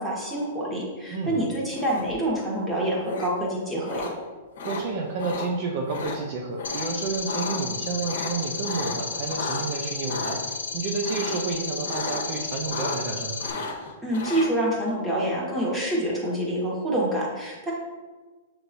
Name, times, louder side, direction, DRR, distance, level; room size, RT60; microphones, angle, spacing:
voice 1, 0.0-4.1 14.0-17.7, right 1 dB, 10° right, -5 dB, 1.4 m, -27 dB
sound 1, 1.7-2.3 3.1-3.3 3.9-4.1 4.6-4.8 5.2-5.5 5.9-6.2 6.6-6.9 7.1-7.6 8.0-9.6 10.1-10.4 11.0-11.5 11.8-12.3 12.5-13.1 13.4-14.5, left 4 dB, 70° left, 0.9 m, -33 dB
voice 2, 4.6-13.4, right 4 dB, 50° right, 0 dB, 0.6 m, -30 dB
sound 2, 6.6-13.5, left 5 dB, 90° left, 0.4 m, -33 dB
6.6 x 3.0 x 2.6 m, 1.3 s
hypercardioid pair, 125°, 0 cm